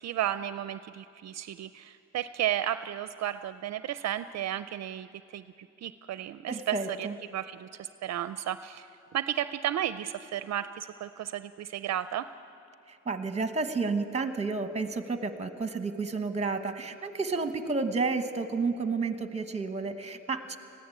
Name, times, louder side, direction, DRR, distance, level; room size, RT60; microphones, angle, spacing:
voice 1, 0.0-5.1 5.3-5.4 5.8-8.9 9.1-12.3, right 11 dB, 65° right, 13 dB, 0.5 m, -33 dB
voice 2, 6.5-7.1 13.0-20.6, right 4 dB, 20° right, 9 dB, 1.2 m, -31 dB
21.0 x 15.5 x 8.5 m, 2.7 s
cardioid pair, 135°, 29 cm